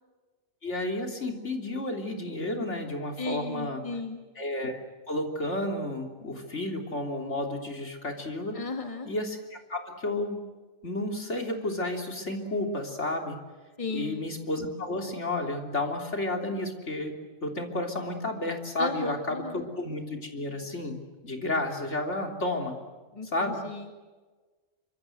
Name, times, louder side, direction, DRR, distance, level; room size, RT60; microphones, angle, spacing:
voice 1, 0.6-3.8 4.4-8.6 9.1-10.4 10.8-13.4 13.9-17.1 17.4-22.8 23.3-23.6, left 1 dB, 60° left, 2 dB, 3.7 m, -32 dB
voice 2, 3.2-4.2 8.5-9.1 13.8-14.2 18.8-19.7 23.1-23.9, left 3 dB, 25° left, 4 dB, 2.3 m, -35 dB
27.5 x 25.0 x 7.9 m, 1.3 s
omnidirectional pair, 1.3 m